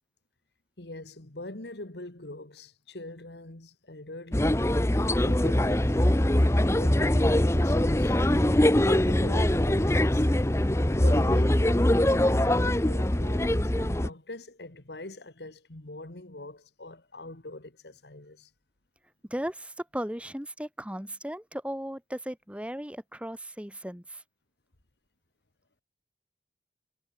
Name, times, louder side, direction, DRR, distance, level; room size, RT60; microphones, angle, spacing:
voice 1, 0.8-4.8 5.2-5.8 6.7-8.2 8.6-10.3 10.9-11.9 12.3-18.5, left 2 dB, 75° left, 2.1 m, -43 dB
sound 1, 4.3-14.1, left 1 dB, 15° left, 0.8 m, -23 dB
voice 2, 19.3-24.2, equal, 5° right, 3.0 m, -36 dB
head